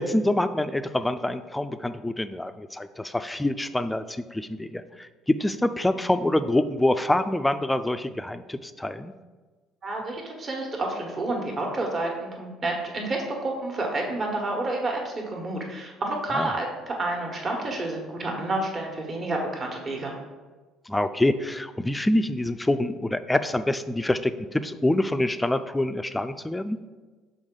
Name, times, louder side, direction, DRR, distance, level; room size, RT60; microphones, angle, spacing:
voice 1, 0.0-9.1 16.3-16.5 20.9-26.8, left 1 dB, 10° left, 11 dB, 0.4 m, -26 dB
voice 2, 9.8-20.1, right 2 dB, 40° right, 0 dB, 1.4 m, -29 dB
6.2 x 4.1 x 3.8 m, 1.3 s
hypercardioid pair, 55°, 0 cm